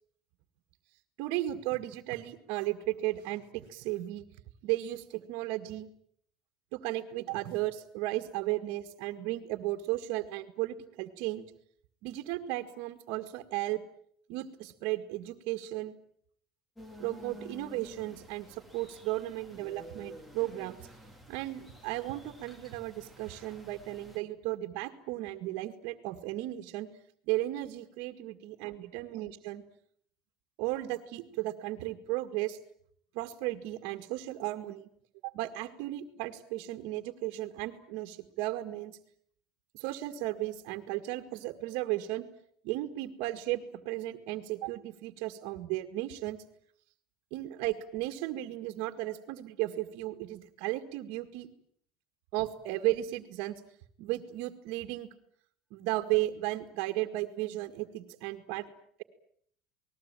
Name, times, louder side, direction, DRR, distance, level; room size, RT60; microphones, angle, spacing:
voice 1, 1.2-4.2 4.6-5.9 6.7-11.5 12.0-13.8 14.3-16.0 17.0-20.9 21.3-26.9 27.3-29.6 30.6-32.6 33.1-34.9 35.2-39.0 39.7-42.3 42.6-46.4 47.3-51.5 52.3-53.6 54.0-55.1 55.7-58.7, right 16 dB, 60° right, 4 dB, 1.9 m, -35 dB
sound 1, 16.8-24.2, right 1 dB, 5° left, 2.2 m, -51 dB
29.0 x 20.0 x 9.0 m, 0.65 s
cardioid pair, 170°, 0 cm